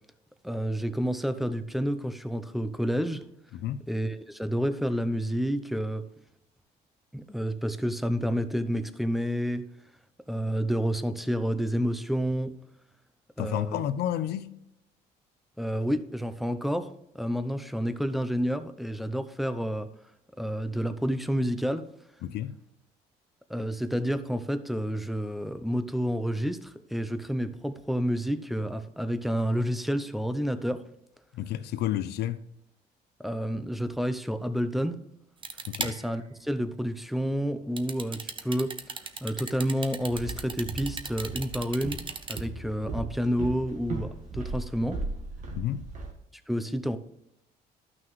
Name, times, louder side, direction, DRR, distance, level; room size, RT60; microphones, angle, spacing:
voice 1, 0.4-3.2 3.9-6.0 7.1-9.6 10.3-12.5 13.4-13.8 15.6-19.9 20.4-21.9 23.5-30.8 33.2-35.0 35.8-38.7 39.2-42.0 42.3-45.0 46.5-47.0, equal, ahead, 0.6 m, -29 dB
voice 2, 13.4-14.6 22.2-22.5 31.3-32.4 35.7-36.0 45.5-45.8, left 11 dB, 75° left, 0.6 m, -31 dB
sound 1, 35.4-36.1 37.8-42.4, right 5 dB, 30° right, 0.8 m, -36 dB
Walk footsteps, 40.0-46.1, right 3 dB, 45° right, 1.8 m, -37 dB
12.5 x 6.0 x 3.1 m
cardioid pair, 110°, 17 cm